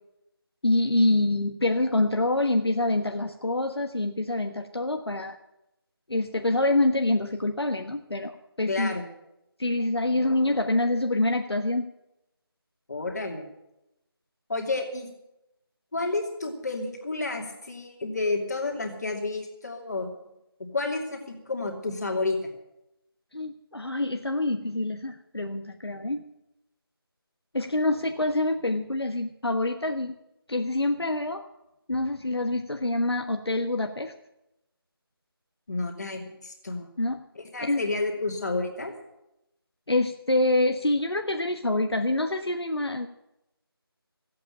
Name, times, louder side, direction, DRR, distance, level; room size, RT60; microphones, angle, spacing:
voice 1, 0.6-5.4 6.1-9.0 9.6-11.9 23.3-26.2 27.5-30.1 30.5-31.4 31.9-34.1 37.0-37.2 37.6-37.8 39.9-43.1, left 2 dB, 80° left, 5 dB, 1.3 m, -26 dB
voice 2, 8.7-9.0 12.9-13.5 14.5-15.1 15.9-20.1 20.6-22.4 35.7-36.9 37.3-38.9, left 3 dB, 45° left, 2 dB, 2.7 m, -30 dB
15.0 x 8.6 x 8.5 m, 0.88 s
figure-of-eight pair, 170°, 13 cm